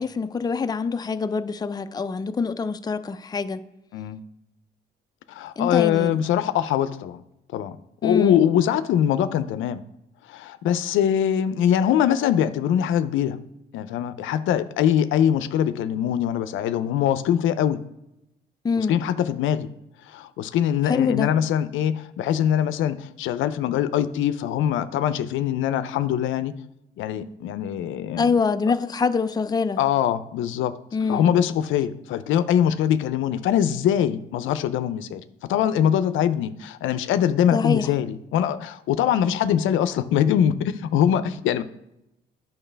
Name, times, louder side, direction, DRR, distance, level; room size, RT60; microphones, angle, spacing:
voice 1, 0.0-3.6 5.6-6.2 8.0-8.4 18.6-19.0 20.9-21.3 28.2-29.8 30.9-31.3 37.5-37.9, left 5 dB, 20° left, 0.4 m, -25 dB
voice 2, 5.3-7.2 7.5-7.8 8.0-9.8 10.3-13.4 13.7-17.8 18.8-19.7 20.0-26.5 27.0-28.3 29.8-30.7 31.1-35.2 35.5-41.6, left 9 dB, 85° left, 0.5 m, -23 dB
8.7 x 5.8 x 3.4 m
cardioid pair, 90°, 20 cm